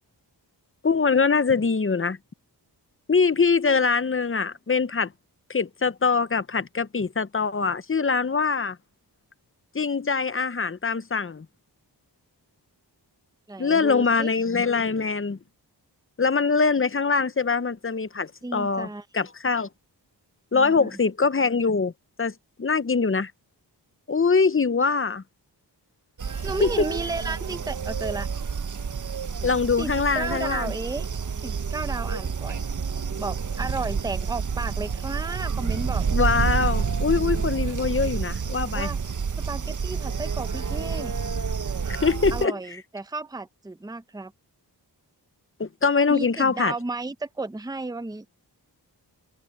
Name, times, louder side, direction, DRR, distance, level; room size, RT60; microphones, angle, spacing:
voice 1, 0.8-2.2 3.1-5.1 5.5-8.8 9.7-11.5 13.6-15.4 16.2-18.9 19.1-19.7 20.5-21.9 22.2-23.3 24.1-25.2 26.6-26.7 29.4-30.7 36.1-38.9 41.9-42.5 45.6-46.7, left 5 dB, 30° left, 0.7 m, -23 dB
voice 2, 13.5-14.3 18.4-19.0 20.5-20.9 26.4-28.3 29.8-31.1 31.4-32.6 33.2-36.1 38.6-39.0 39.5-41.1 42.3-44.3 46.1-48.3, right 3 dB, 10° right, 0.7 m, -33 dB
sound 1, 26.2-42.5, right 6 dB, 45° right, 0.8 m, -29 dB
wide cardioid pair, 80°, 42 cm